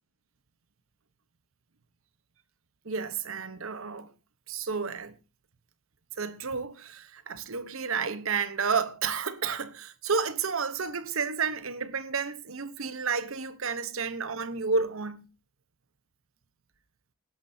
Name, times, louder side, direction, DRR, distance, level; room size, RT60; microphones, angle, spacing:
voice 1, 2.8-4.1 4.5-5.2 6.2-15.3, right 5 dB, 75° right, 1.0 m, -31 dB
18.5 x 11.0 x 2.8 m
head